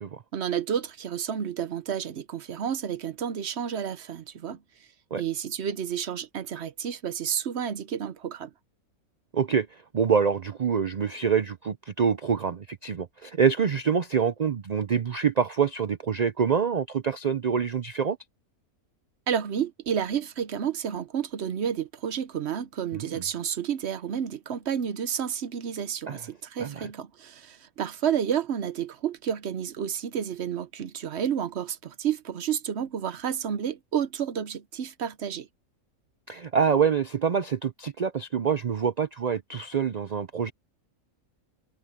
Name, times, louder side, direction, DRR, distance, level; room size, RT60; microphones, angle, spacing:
voice 1, 0.3-4.6 5.2-8.5 19.3-35.5, right 8 dB, 55° right, 0.9 m, -30 dB
voice 2, 9.3-18.2 22.9-23.2 26.1-26.2 26.6-26.9 36.3-40.5, right 6 dB, 85° right, 0.3 m, -26 dB
omnidirectional pair, 1.5 m